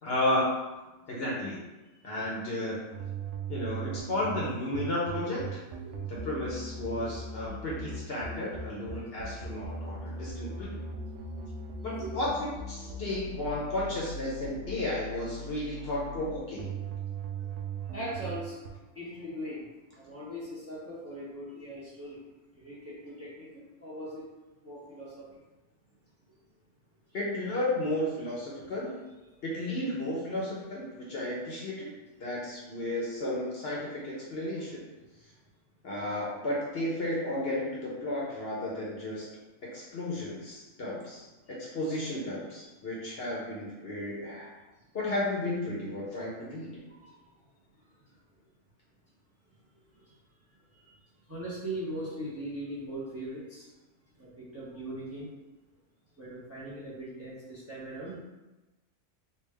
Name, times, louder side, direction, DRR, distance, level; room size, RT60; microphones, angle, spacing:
voice 1, 0.0-0.5 1.1-1.6 2.0-2.8 3.5-5.4 6.1-10.8 11.8-16.7 27.1-29.0 29.4-31.9 32.2-34.8 35.8-39.3 39.7-41.2 41.5-44.5 44.9-46.8, left 1 dB, 55° left, -6 dB, 0.9 m, -33 dB
sound 1, 2.9-18.7, right 3 dB, 70° right, 0.8 m, -39 dB
voice 2, 8.9-9.3 10.2-10.3 11.2-11.3 11.6-11.7 12.0-12.1 17.4-19.7 20.0-22.2 22.5-24.3 24.6-25.3 29.3-29.4 33.2-33.4 41.5-41.6 42.6-42.7 44.8-44.9 46.9-47.3 47.8-48.2 49.5-49.6 49.9-50.1 50.5-50.9 51.3-53.7 54.2-55.3 56.2-58.2, right 1 dB, 15° right, -8 dB, 0.7 m, -41 dB
3.4 x 2.4 x 3.3 m, 1.1 s
omnidirectional pair, 1.4 m